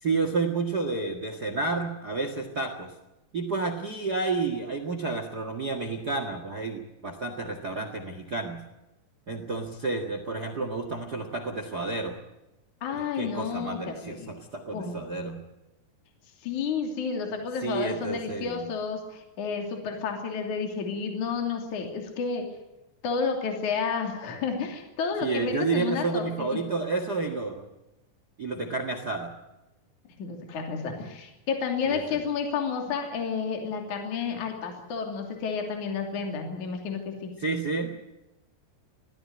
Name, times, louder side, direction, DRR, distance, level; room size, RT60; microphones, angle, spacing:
voice 1, 0.0-2.9 3.3-8.6 9.3-12.2 12.9-15.4 17.6-18.7 25.2-27.7 28.4-29.3 31.9-32.2 37.4-37.9, right 3 dB, 75° right, 6 dB, 0.9 m, -30 dB
voice 2, 12.8-14.3 14.7-15.0 16.4-22.5 23.0-26.6 30.2-37.3, left 5 dB, 50° left, 3 dB, 3.9 m, -31 dB
21.5 x 15.5 x 9.6 m, 0.97 s
omnidirectional pair, 5.0 m